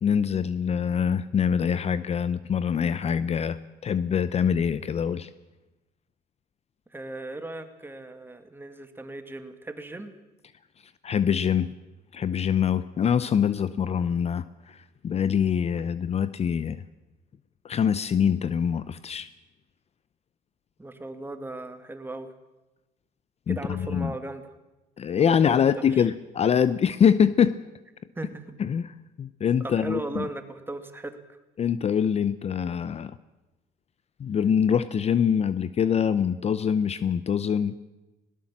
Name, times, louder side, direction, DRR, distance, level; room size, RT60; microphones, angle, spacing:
voice 1, 0.0-5.3 11.0-11.7 12.1-16.8 17.6-19.3 23.5-24.1 25.0-27.6 28.6-30.3 31.6-33.1 34.2-37.7, left 7 dB, 40° left, 15 dB, 0.7 m, -24 dB
voice 2, 6.9-10.1 20.8-22.3 23.5-24.5 25.2-25.6 25.9-26.1 28.2-28.6 29.6-31.2, right 2 dB, 10° right, 8 dB, 2.1 m, -37 dB
20.0 x 17.5 x 7.4 m, 1.0 s
cardioid pair, 110°, 17 cm